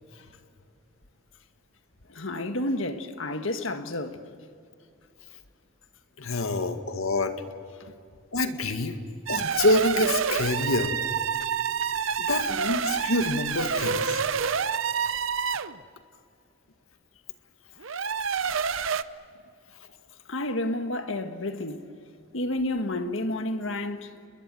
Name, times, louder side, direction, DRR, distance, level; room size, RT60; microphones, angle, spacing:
voice 1, 2.1-4.2 6.3-6.6 7.8-7.9 20.3-21.9 22.3-24.1, left 1 dB, 70° left, 1.6 m, -30 dB
voice 2, 6.2-7.3 8.3-9.0 9.3-11.0 12.2-14.2, left 2 dB, 85° left, 1.9 m, -26 dB
sound 1, 9.3-15.8 17.8-19.0, right 6 dB, 70° right, 0.7 m, -28 dB
30.0 x 21.5 x 7.7 m
head